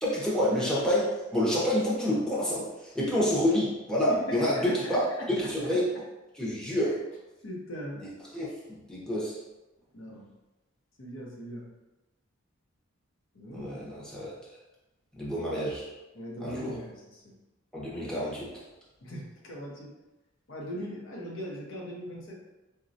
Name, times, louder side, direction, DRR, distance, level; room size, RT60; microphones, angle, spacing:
voice 1, 0.0-2.7 2.9-5.8 6.3-7.0 8.0-9.4 13.5-14.3 15.2-15.9 16.4-16.8 17.7-18.5, left 1 dB, 5° left, -7 dB, 0.6 m, -28 dB
voice 2, 4.1-5.8 6.8-6.9 7.4-8.0 9.9-10.3 11.0-11.7 13.3-13.8 16.1-17.3 19.0-19.9 20.5-22.3, equal, 65° left, -2 dB, 0.7 m, -40 dB
4.0 x 2.2 x 2.6 m, 1.0 s
head